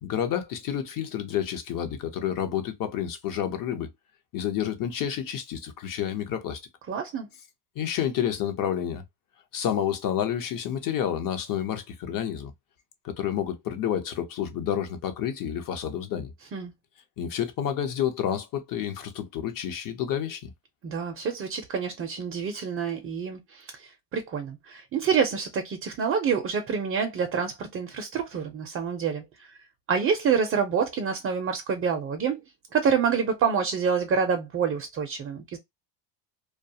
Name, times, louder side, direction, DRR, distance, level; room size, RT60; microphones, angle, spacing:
voice 1, 0.0-3.9 4.3-6.6 7.8-9.0 9.5-12.5 13.0-16.3 17.2-20.5, left 9 dB, 45° left, 0.7 m, -29 dB
voice 2, 6.9-7.3 16.5-16.7 20.8-29.5 29.9-32.4 32.7-35.6, right 6 dB, 30° right, 0.4 m, -27 dB
2.4 x 2.3 x 2.6 m
cardioid pair, 115°, 48 cm